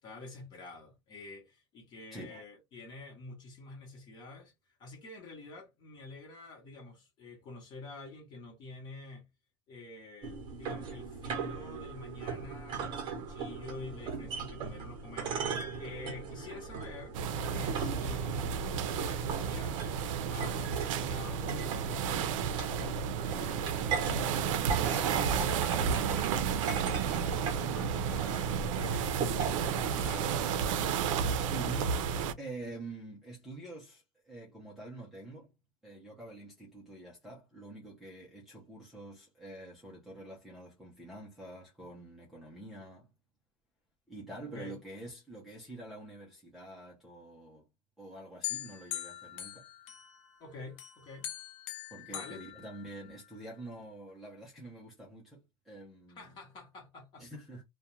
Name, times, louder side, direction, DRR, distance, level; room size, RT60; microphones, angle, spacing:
voice 1, 0.0-4.5 4.8-9.2 9.7-17.2 17.5-20.0 20.3-26.5 26.8-29.5 29.7-30.9 44.5-44.8 50.4-51.3 52.1-52.5 56.1-57.3, left 3 dB, 25° left, 0.9 m, -48 dB
voice 2, 2.1-2.4 31.5-32.0 32.4-35.5 35.8-43.1 44.1-47.6 48.0-49.6 51.9-56.4 57.2-57.6, right 2 dB, ahead, 0.4 m, -46 dB
sound 1, 10.2-29.8, right 5 dB, 30° right, 0.8 m, -39 dB
sound 2, 17.1-32.3, right 7 dB, 90° right, 0.4 m, -32 dB
sound 3, 48.4-50.4 50.8-53.3, left 13 dB, 85° left, 0.7 m, -42 dB
2.3 x 2.1 x 2.9 m
supercardioid pair, 175°, 16 cm